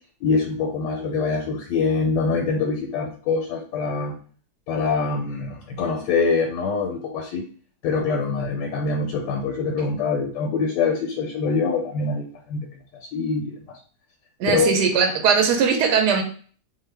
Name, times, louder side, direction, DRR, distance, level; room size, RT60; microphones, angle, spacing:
voice 1, 0.2-4.2 4.7-7.4 7.8-12.7 12.9-13.8 14.5-14.7, left 4 dB, 85° left, 1 dB, 1.2 m, -24 dB
voice 2, 14.4-16.2, right 6 dB, 75° right, 3 dB, 1.1 m, -19 dB
2.8 x 2.3 x 3.2 m, 0.43 s
omnidirectional pair, 1.9 m